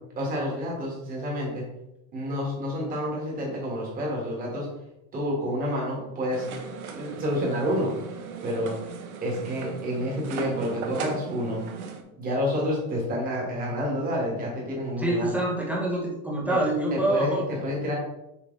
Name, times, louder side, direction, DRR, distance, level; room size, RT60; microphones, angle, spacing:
voice 1, 0.2-1.7 2.1-4.7 5.1-6.5 6.9-7.9 8.4-8.7 9.2-11.6 12.2-15.3 16.5-16.6 16.9-18.0, equal, 20° right, -2 dB, 2.1 m, -29 dB
sound 1, 6.3-12.0, right 6 dB, 85° right, 1.2 m, -38 dB
voice 2, 15.0-18.0, right 1 dB, 5° right, -3 dB, 1.2 m, -26 dB
6.8 x 5.0 x 3.4 m, 0.88 s
supercardioid pair, 160°, 42 cm